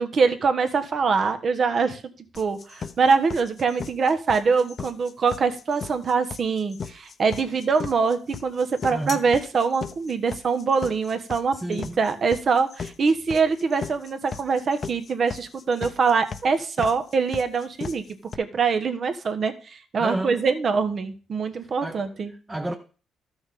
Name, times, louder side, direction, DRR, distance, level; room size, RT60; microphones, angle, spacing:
voice 1, 0.0-2.0 2.3-18.0 18.4-22.3, right 5 dB, 50° right, 1.2 m, -24 dB
sound 1, 2.3-18.3, left 6 dB, 45° left, 0.8 m, -36 dB
voice 2, 8.9-9.3 11.5-12.0 20.0-20.4 21.5-22.7, right 1 dB, 15° right, 0.9 m, -32 dB
13.0 x 6.3 x 3.7 m
cardioid pair, 90°, 0 cm